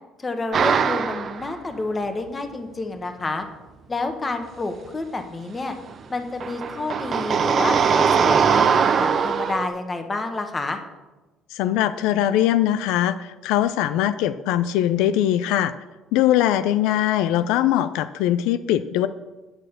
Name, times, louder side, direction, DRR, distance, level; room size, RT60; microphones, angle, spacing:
voice 1, 0.2-3.5 3.9-5.8 6.1-8.7 8.9-10.8, left 3 dB, 20° left, 7 dB, 1.1 m, -29 dB
sound 1, 0.5-1.5 5.9-6.0 6.4-9.7, right 6 dB, 40° right, 0.6 m, -20 dB
voice 2, 11.5-15.7 16.1-19.1, left 12 dB, 85° left, 12 dB, 0.4 m, -21 dB
8.7 x 6.5 x 6.5 m, 1.1 s
cardioid pair, 120°, 0 cm